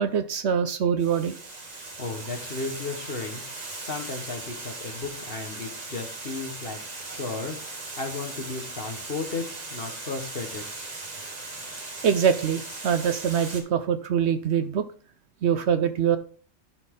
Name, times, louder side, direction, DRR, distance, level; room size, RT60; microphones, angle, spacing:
voice 1, 0.0-1.3 12.0-14.9 15.4-16.2, right 8 dB, 65° right, 10 dB, 0.8 m, -24 dB
Water, 1.0-13.6, right 2 dB, 35° right, 1.3 m, -38 dB
voice 2, 2.0-3.4 3.8-6.8 7.1-10.7, left 3 dB, 50° left, 3 dB, 1.6 m, -34 dB
11.0 x 4.1 x 3.7 m, 0.42 s
omnidirectional pair, 1.3 m